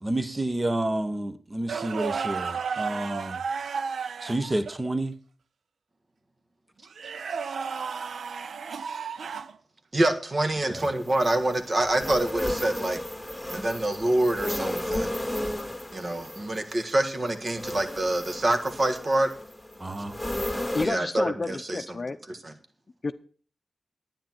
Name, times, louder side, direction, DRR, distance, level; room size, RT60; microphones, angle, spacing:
voice 1, 0.0-3.4 4.2-5.1 10.7-10.8 19.8-20.2, right 1 dB, 25° right, 1.0 m, -29 dB
sound 1, 1.7-4.8 6.9-9.6 11.9-12.1 14.4-14.7 17.6-17.8 19.9-20.2, right 6 dB, 90° right, 0.5 m, -33 dB
voice 2, 9.9-13.0 13.5-15.2 15.9-19.3 20.8-22.0 22.3-22.5, right 1 dB, 40° right, 1.6 m, -26 dB
sound 2, 10.7-20.9, left 1 dB, 5° left, 2.4 m, -34 dB
voice 3, 20.7-22.2 23.0-23.1, left 3 dB, 45° left, 0.6 m, -30 dB
10.5 x 9.0 x 5.9 m
wide cardioid pair, 90°, 0 cm